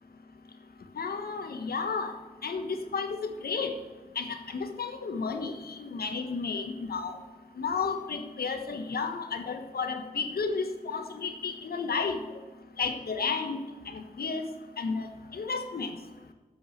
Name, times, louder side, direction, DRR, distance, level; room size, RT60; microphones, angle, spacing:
voice 1, 1.0-2.1 2.4-2.7 2.9-3.1 3.4-3.7 4.2-7.1 7.6-12.2 12.8-13.6 13.9-14.4 14.8-15.1 15.3-15.9, left 5 dB, 65° left, 7 dB, 1.3 m, -32 dB
10.5 x 6.2 x 8.0 m, 1.3 s
supercardioid pair, 40°, 17 cm